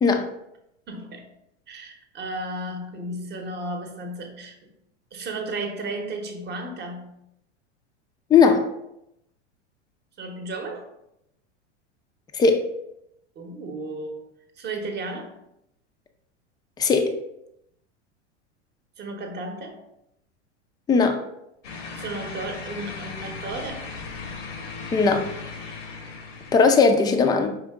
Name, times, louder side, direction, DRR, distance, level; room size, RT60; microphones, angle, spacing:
voice 1, 0.9-1.2 1.7-4.6 5.1-7.2 10.2-10.9 13.4-14.2 14.6-15.4 19.0-19.8 22.0-23.9, right 2 dB, 30° right, 4 dB, 0.9 m, -34 dB
voice 2, 8.3-8.7 12.3-12.6 16.8-17.1 20.9-21.2 24.9-25.3 26.5-27.5, left 5 dB, 10° left, 5 dB, 0.4 m, -18 dB
sound 1, 21.6-26.7, left 4 dB, 85° left, 1.0 m, -37 dB
5.1 x 2.8 x 3.4 m, 0.81 s
hypercardioid pair, 110°, 35 cm